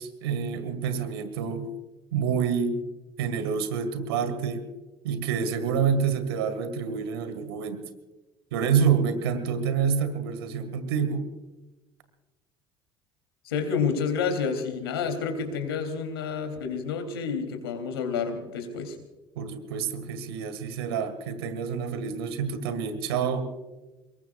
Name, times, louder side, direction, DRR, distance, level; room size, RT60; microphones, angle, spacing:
voice 1, 0.0-1.7 2.1-2.8 3.2-4.7 5.0-7.8 8.5-11.2 19.4-23.5, right 6 dB, 80° right, 9 dB, 1.9 m, -27 dB
voice 2, 13.4-19.0, left 6 dB, 85° left, 6 dB, 3.2 m, -29 dB
26.0 x 22.0 x 2.4 m, 1.1 s
hypercardioid pair, 65°, 13 cm